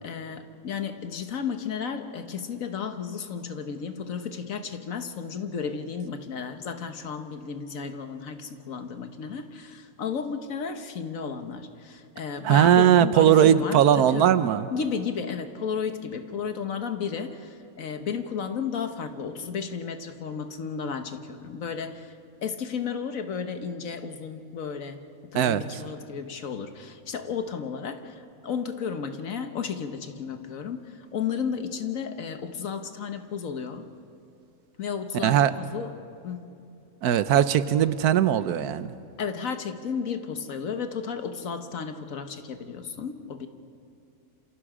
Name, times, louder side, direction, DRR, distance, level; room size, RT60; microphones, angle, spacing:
voice 1, 0.0-14.3 14.7-22.1 22.4-33.8 34.8-35.9 36.2-36.5 39.2-43.5, left 6 dB, 65° left, 7 dB, 1.5 m, -33 dB
voice 2, 12.4-14.7 25.3-25.6 35.2-35.5 37.0-38.9, right 10 dB, 90° right, 13 dB, 1.3 m, -19 dB
28.0 x 26.5 x 5.0 m, 2.5 s
omnidirectional pair, 1.6 m